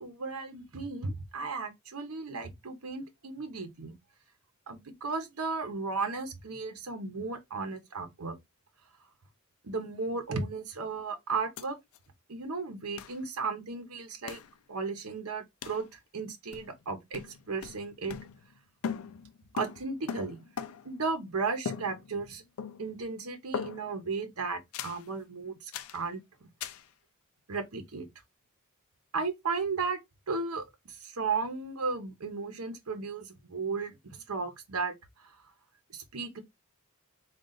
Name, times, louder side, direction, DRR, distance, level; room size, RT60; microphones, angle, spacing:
voice 1, 0.0-3.9 4.7-8.4 9.6-11.8 12.3-14.4 14.7-17.2 17.5-18.2 19.5-20.4 20.8-22.4 22.8-26.5 27.5-28.1 29.1-30.0 30.3-35.4 35.9-36.4, right 4 dB, 85° right, 0.9 m, -35 dB
sound 1, 11.6-11.7 11.9-12.0 13.0-13.2 14.3-14.5 15.6-15.9 16.5-16.9 17.1-18.6 18.8-21.0 21.6-22.3 22.6-23.0 23.5-24.0 24.7-25.1 25.7-26.0 26.6-26.9, left 6 dB, 80° left, 0.4 m, -39 dB
3.8 x 2.4 x 3.9 m
head